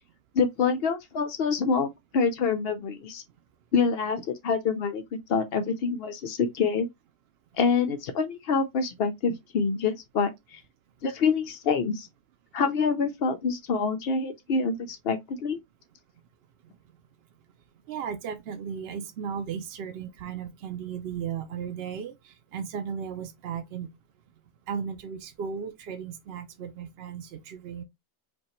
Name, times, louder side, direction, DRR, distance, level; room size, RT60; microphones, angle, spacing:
voice 1, 0.3-3.2 3.7-6.9 7.6-10.6 11.0-12.1 12.5-15.6, left 5 dB, 80° left, 0.5 m, -26 dB
voice 2, 17.9-23.9 24.7-27.8, right 7 dB, 80° right, 0.5 m, -35 dB
5.2 x 2.3 x 2.9 m
omnidirectional pair, 1.7 m